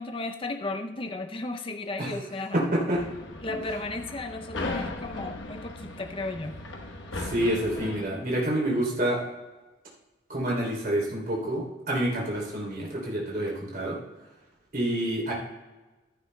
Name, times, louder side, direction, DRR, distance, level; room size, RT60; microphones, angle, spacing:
voice 1, 0.0-2.6 3.4-6.6, left 2 dB, 30° left, 6 dB, 0.5 m, -34 dB
voice 2, 2.5-3.0 7.2-9.2 10.3-14.0 14.7-15.3, right 1 dB, 45° right, -2 dB, 3.2 m, -28 dB
sound 1, 2.9-8.1, left 2 dB, 90° left, 1.1 m, -37 dB
15.0 x 11.0 x 2.2 m, 1.1 s
head